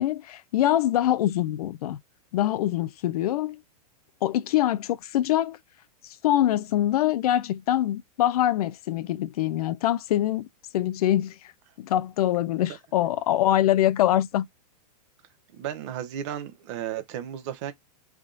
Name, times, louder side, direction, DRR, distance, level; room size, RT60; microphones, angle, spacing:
voice 1, 0.0-2.0 2.3-3.6 4.2-5.6 6.2-10.5 10.7-11.3 11.8-14.5, left 13 dB, 70° left, 0.5 m, -24 dB
voice 2, 15.5-17.7, right 10 dB, 50° right, 0.9 m, -34 dB
3.6 x 2.4 x 3.8 m
hypercardioid pair, 145°, 20 cm